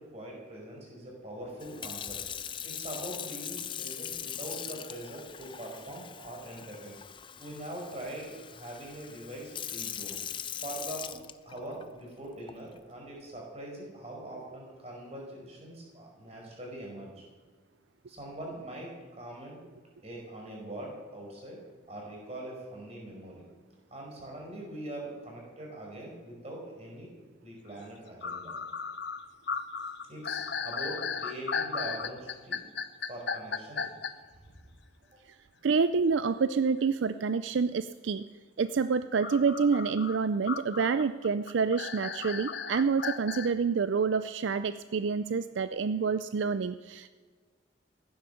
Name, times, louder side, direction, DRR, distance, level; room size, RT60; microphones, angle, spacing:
voice 1, 0.0-2.2 2.6-7.0 7.4-10.2 10.6-11.1 11.4-17.2 18.0-18.9 19.2-19.6 20.0-21.6 21.9-23.4 23.9-27.1 27.4-28.5 30.1-32.7 33.0-33.9 34.4-34.6 35.1-35.2, right 1 dB, 35° right, -1 dB, 5.1 m, -42 dB
Sink (filling or washing) / Fill (with liquid), 1.6-11.8 12.5-12.8, left 9 dB, 25° left, 0.5 m, -41 dB
sound 1, 27.8-27.9 28.2-34.1 39.2-43.5, left 5 dB, 60° left, 0.8 m, -35 dB
voice 2, 35.6-38.2 38.6-47.1, right 5 dB, 75° right, 12 dB, 0.4 m, -28 dB
15.5 x 10.5 x 7.0 m, 1.5 s
head